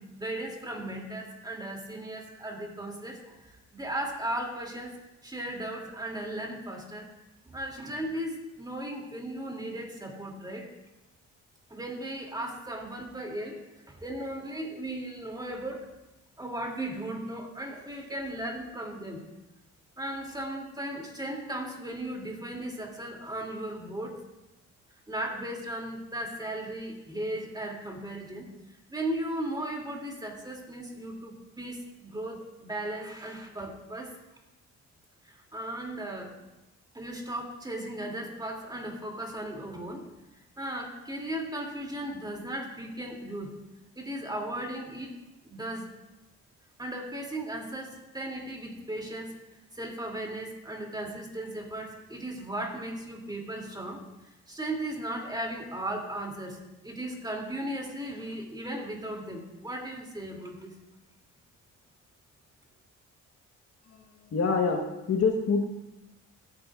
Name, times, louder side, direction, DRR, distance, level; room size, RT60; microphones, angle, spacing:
voice 1, 0.0-7.1 7.4-10.7 11.7-13.6 13.9-15.9 16.4-19.2 20.0-24.2 25.1-28.5 28.9-34.1 35.2-36.3 36.9-40.1 40.6-43.5 44.0-45.2 45.4-45.9 46.8-49.3 49.7-60.7, right 1 dB, 15° right, 0 dB, 2.5 m, -36 dB
voice 2, 64.3-64.8 65.1-65.6, left 4 dB, 50° left, 3 dB, 1.2 m, -25 dB
16.5 x 9.8 x 2.4 m, 0.97 s
cardioid pair, 90°, 30 cm